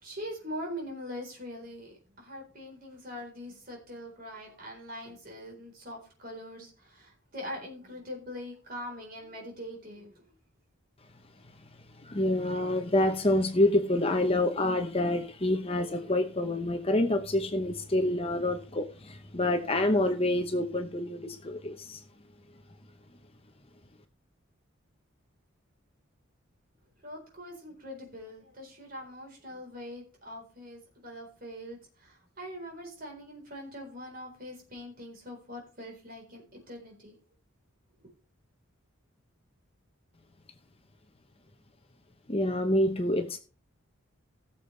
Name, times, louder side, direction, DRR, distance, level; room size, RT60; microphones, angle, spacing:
voice 1, 0.0-10.3 27.0-37.2, equal, 45° right, 1 dB, 4.2 m, -43 dB
voice 2, 12.0-22.0 42.3-43.4, left 1 dB, 25° left, 6 dB, 0.9 m, -27 dB
17.0 x 7.1 x 3.3 m, 0.37 s
head